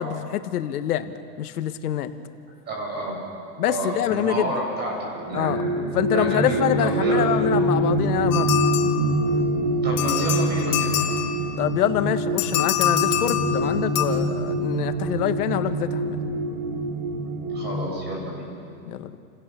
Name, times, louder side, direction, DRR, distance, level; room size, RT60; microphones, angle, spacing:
voice 1, 0.0-2.1 3.6-4.5 5.3-5.7 5.9-8.5 11.6-16.2 18.9-19.2, left 11 dB, 80° left, 9 dB, 1.6 m, -26 dB
voice 2, 2.7-3.2 3.7-5.5 6.1-7.3 9.8-10.9 17.5-18.5, right 1 dB, 20° right, -2 dB, 7.1 m, -29 dB
sound 1, 5.1-17.9, right 1 dB, 55° right, 2.2 m, -25 dB
sound 2, 8.3-9.5 10.0-11.7 12.4-14.0, left 12 dB, 60° left, 2.6 m, -26 dB
29.5 x 16.5 x 7.0 m, 2.4 s
supercardioid pair, 160°, 45 cm